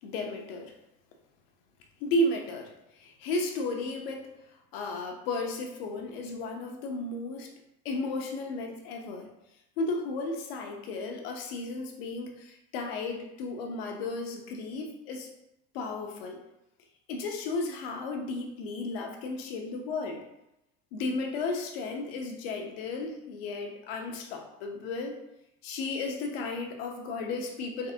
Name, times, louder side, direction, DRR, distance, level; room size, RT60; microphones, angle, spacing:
voice 1, 0.0-0.7 2.0-2.7 3.0-4.3 4.7-7.5 7.8-9.3 9.8-15.3 15.7-16.4 17.1-20.2 20.9-25.2 25.6-27.9, left 2 dB, 85° left, 2 dB, 0.8 m, -34 dB
3.7 x 3.4 x 2.8 m, 0.87 s
supercardioid pair, 125°, 29 cm